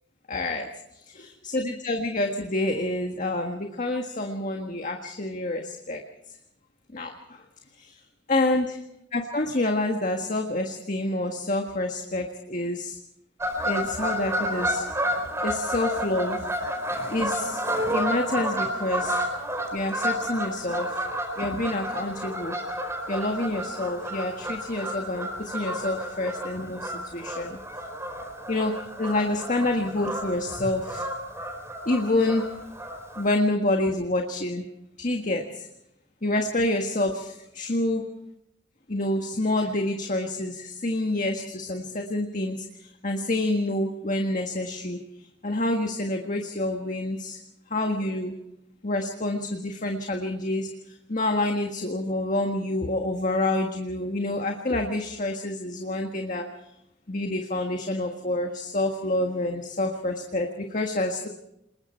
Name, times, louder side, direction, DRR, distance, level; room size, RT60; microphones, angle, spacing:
voice 1, 0.3-0.7 1.4-6.0 6.9-7.4 7.8-7.9 8.3-8.8 9.1-13.0 13.7-14.9 15.4-16.5 17.1-17.6 17.9-19.3 19.7-21.0 21.4-22.6 23.1-27.6 28.5-31.1 31.9-32.5 33.2-34.7 35.0-35.7 36.2-38.1 38.9-45.0 45.4-47.4 47.7-48.3 48.8-50.7 51.1-56.4 57.1-61.3, left 2 dB, 45° left, 3 dB, 1.6 m, -27 dB
Fowl / Bird vocalization bird call bird song, 13.4-33.3, equal, 15° right, 4.6 m, -31 dB
28.5 x 21.0 x 4.5 m, 0.82 s
head